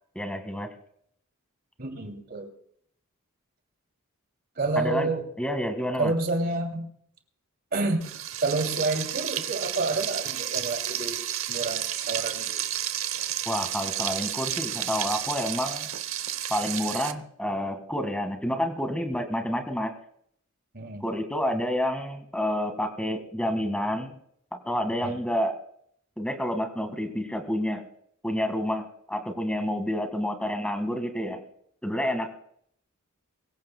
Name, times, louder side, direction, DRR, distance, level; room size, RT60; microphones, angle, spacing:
voice 1, 0.1-0.7 4.8-5.1 5.4-6.1 13.4-15.9 16.5-19.9 21.0-24.1 24.5-25.6 26.2-27.9 28.2-31.4 31.8-32.3, equal, 5° left, 6 dB, 1.7 m, -29 dB
voice 2, 1.8-2.5 4.6-5.2 6.0-6.9 7.7-8.0 8.4-11.2 11.5-12.6 20.7-21.0 25.0-25.2, right 3 dB, 45° right, 4 dB, 2.7 m, -29 dB
Frying (food), 8.0-17.1, right 11 dB, 70° right, 0.8 m, -31 dB
23.5 x 16.0 x 2.2 m, 0.67 s
head